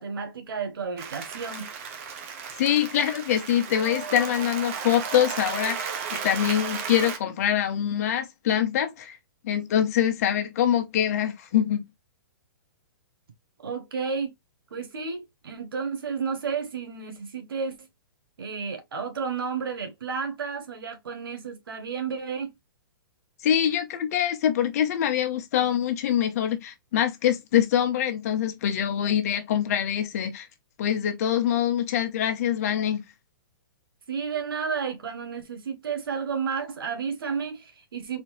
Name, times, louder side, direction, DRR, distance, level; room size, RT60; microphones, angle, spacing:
voice 1, 0.0-1.7 13.6-14.3 14.7-17.8 18.4-22.5 34.1-38.2, right 5 dB, 90° right, 1.5 m, -32 dB
Applause, 1.0-7.2, right 6 dB, 40° right, 0.9 m, -34 dB
voice 2, 2.6-5.9 6.2-9.2 9.4-11.8 23.4-30.5 30.8-33.0, left 10 dB, 45° left, 0.9 m, -24 dB
4.1 x 2.8 x 3.1 m
hypercardioid pair, 160°, 12 cm